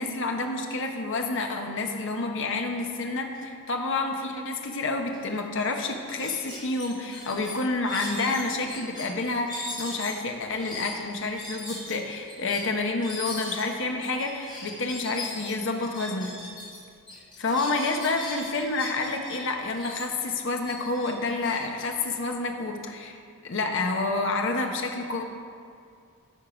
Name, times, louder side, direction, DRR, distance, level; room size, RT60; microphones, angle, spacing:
voice 1, 0.0-16.6 17.4-23.2 23.4-25.2, left 3 dB, 60° left, 3 dB, 0.9 m, -29 dB
glass creaking, 5.1-5.2 5.5-5.7 6.1-9.1 9.5-16.8 17.1-19.4 19.7-22.6, left 2 dB, 20° left, 2.2 m, -39 dB
13.0 x 4.7 x 5.1 m, 2.4 s
head